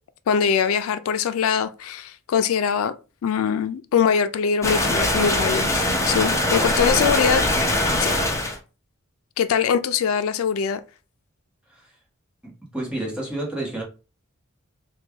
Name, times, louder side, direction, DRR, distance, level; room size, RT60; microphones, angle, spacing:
voice 1, 0.3-2.9 3.2-7.4 8.0-8.1 9.4-10.8, left 7 dB, 90° left, 0.3 m, -22 dB
sound 1, 4.6-8.6, left 1 dB, 15° left, 0.6 m, -22 dB
voice 2, 12.4-13.8, right 1 dB, 5° right, 1.1 m, -30 dB
3.2 x 2.2 x 3.4 m
head